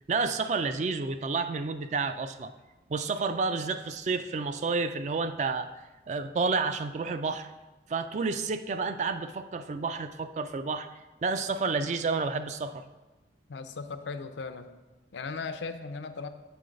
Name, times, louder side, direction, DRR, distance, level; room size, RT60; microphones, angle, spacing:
voice 1, 0.1-2.5 2.9-5.7 6.1-7.5 7.9-10.9 11.2-12.8, right 4 dB, 40° right, 10 dB, 0.3 m, -30 dB
voice 2, 13.5-14.7 15.1-16.3, left 4 dB, 80° left, 9 dB, 0.5 m, -37 dB
6.9 x 3.8 x 5.1 m, 1.1 s
head